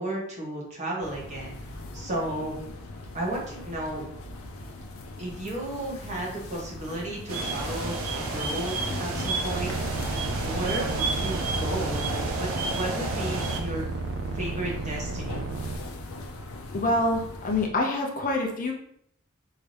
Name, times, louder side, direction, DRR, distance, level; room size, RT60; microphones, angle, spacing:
voice 1, 0.0-2.6 3.1-4.0 5.2-9.7 10.4-13.8 14.3-15.4, right 1 dB, 35° right, -4 dB, 1.3 m, -33 dB
sound 1, 1.0-17.7, left 2 dB, 85° left, 0.6 m, -41 dB
sound 2, 7.3-13.6, right 2 dB, 90° right, 0.7 m, -30 dB
sound 3, 9.5-15.8, right 3 dB, 60° right, 0.3 m, -33 dB
voice 2, 16.7-18.7, left 2 dB, 40° left, 0 dB, 0.6 m, -26 dB
4.7 x 2.8 x 3.3 m, 0.68 s
head